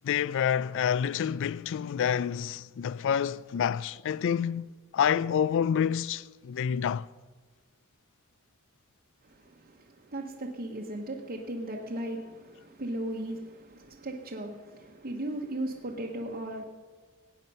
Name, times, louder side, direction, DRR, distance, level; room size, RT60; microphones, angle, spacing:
voice 1, 0.0-7.1, left 8 dB, 60° left, 0.3 m, -28 dB
voice 2, 9.2-16.6, right 1 dB, 40° right, 1.0 m, -37 dB
16.5 x 9.1 x 5.5 m
head